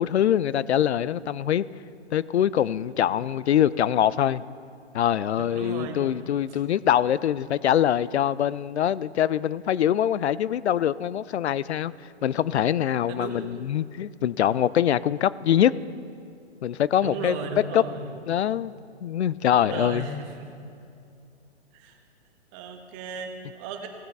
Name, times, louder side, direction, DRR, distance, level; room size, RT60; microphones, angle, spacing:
voice 1, 0.0-1.6 2.1-4.4 4.9-11.9 12.2-15.7 16.6-17.3 17.7-17.8 18.3-18.7 19.0-20.0, left 10 dB, 70° left, 19 dB, 0.5 m, -23 dB
voice 2, 5.4-6.1 6.5-6.6 13.1-13.6 17.0-18.2 19.5-20.5 21.7-22.0 22.5-23.9, right 4 dB, 30° right, 5 dB, 1.3 m, -36 dB
18.0 x 9.0 x 3.5 m, 2.5 s
hypercardioid pair, 130°, 34 cm